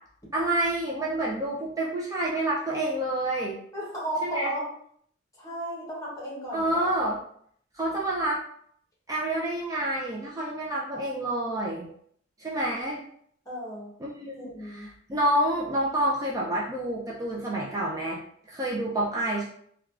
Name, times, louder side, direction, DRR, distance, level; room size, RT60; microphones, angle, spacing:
voice 1, 0.3-3.6 4.2-4.5 6.5-7.2 7.7-8.4 9.1-11.9 12.4-13.0 14.0-18.2 18.5-19.4, right 1 dB, 20° right, -5 dB, 0.4 m, -28 dB
voice 2, 3.7-4.7 5.4-6.8 13.4-13.9 14.4-14.9, right 1 dB, 20° left, -4 dB, 1.0 m, -34 dB
3.3 x 2.2 x 2.4 m, 0.65 s
head